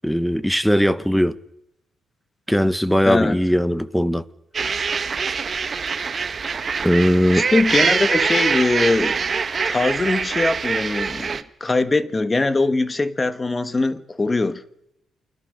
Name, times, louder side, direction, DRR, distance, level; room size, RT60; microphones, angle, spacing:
voice 1, 0.0-1.3 2.5-4.2 6.8-7.5, equal, ahead, 1.2 m, -19 dB
voice 2, 3.0-3.4 7.3-9.3 9.6-14.6, left 3 dB, 25° left, 1.5 m, -21 dB
sound 1, 4.5-11.4, right 5 dB, 40° right, 1.5 m, -24 dB
29.0 x 21.0 x 6.7 m
cardioid pair, 90°, 0 cm